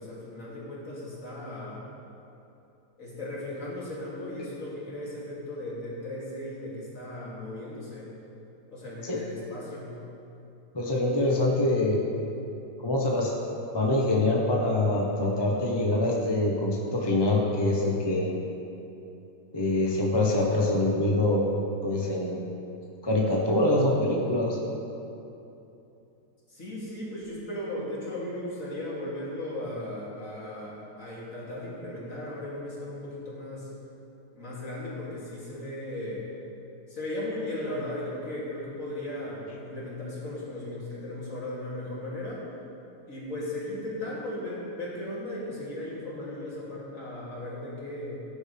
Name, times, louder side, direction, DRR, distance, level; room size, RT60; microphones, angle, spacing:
voice 1, 0.0-1.8 3.0-8.1 8.7-10.0 26.5-33.7 34.3-36.3 36.9-42.4 43.1-48.2, left 1 dB, 50° left, -7 dB, 3.2 m, -36 dB
voice 2, 10.7-12.0 12.8-13.3 13.7-18.3 19.5-21.4 21.8-22.4 23.0-24.6, left 2 dB, 15° left, -2 dB, 1.0 m, -24 dB
16.5 x 9.9 x 3.5 m, 2.8 s
omnidirectional pair, 1.8 m